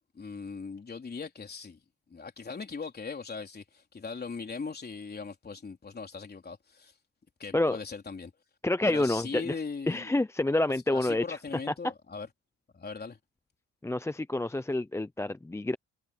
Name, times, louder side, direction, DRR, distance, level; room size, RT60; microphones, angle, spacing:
voice 1, 0.1-1.8 2.1-6.9 7.4-8.3 8.9-10.1 10.9-12.3 12.7-13.2, left 4 dB, 30° left, 3.9 m, -39 dB
voice 2, 8.6-9.6 9.9-11.4 13.8-15.8, left 2 dB, 10° left, 0.6 m, -28 dB
cardioid pair, 90°, 30 cm